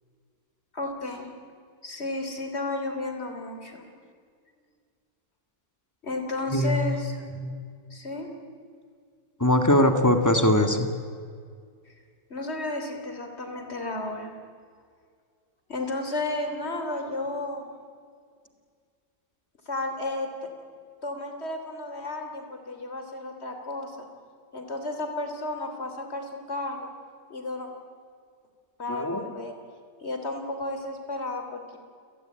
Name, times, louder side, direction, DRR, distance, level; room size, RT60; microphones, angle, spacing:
voice 1, 0.7-1.3 1.8-3.8 6.0-7.2 7.9-8.3 11.9-12.0 12.3-14.3 15.7-17.7 19.7-20.5 21.0-23.9 24.5-26.9 27.3-27.7 28.8-29.6 30.0-31.8, left 2 dB, 30° left, 5 dB, 3.4 m, -33 dB
voice 2, 6.5-6.9 7.3-7.5 9.4-10.9 28.9-29.2, left 1 dB, 10° left, 6 dB, 1.6 m, -21 dB
29.0 x 18.0 x 9.1 m, 2.1 s
omnidirectional pair, 2.4 m